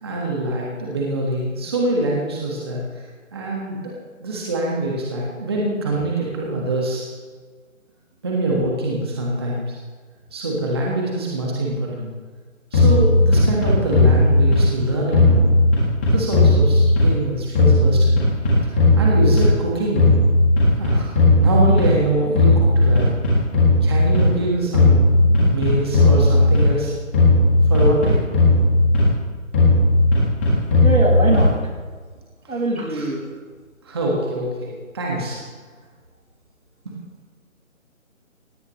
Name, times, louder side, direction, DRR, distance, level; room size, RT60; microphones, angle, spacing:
voice 1, 0.0-3.9 4.2-7.1 8.2-9.7 10.3-12.1 12.7-15.6 16.1-18.2 18.6-20.1 20.8-23.1 23.8-26.9 27.6-28.2 32.4-32.5 32.9-33.1 33.8-35.4 36.8-36.9, right 1 dB, 20° right, -3 dB, 1.7 m, -24 dB
sound 1, 12.7-14.8 15.1-17.3 17.6-19.7 20.0-22.1 22.4-24.3 24.7-26.8 27.1-29.2 29.5-31.7, left 2 dB, 10° left, 1.6 m, -15 dB
voice 2, 30.8-31.5 32.5-33.3, right 2 dB, 85° right, -1 dB, 5.7 m, -22 dB
17.5 x 17.5 x 3.2 m, 1.5 s
hypercardioid pair, 175°, 41 cm